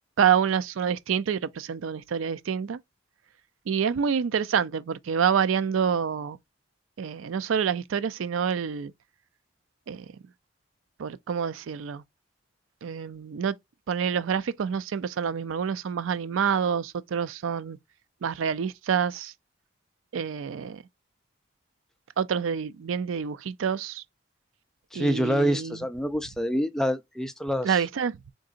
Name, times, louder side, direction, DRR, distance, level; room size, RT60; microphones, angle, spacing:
voice 1, 0.2-2.8 3.7-6.4 7.0-8.9 9.9-10.1 11.0-12.0 12.8-13.5 13.9-17.8 18.2-19.3 20.1-20.8 22.2-24.0 24.9-25.8 27.6-28.3, right 7 dB, 90° right, 0.4 m, -27 dB
voice 2, 24.9-27.8, equal, 5° left, 0.3 m, -26 dB
3.9 x 3.6 x 2.4 m
head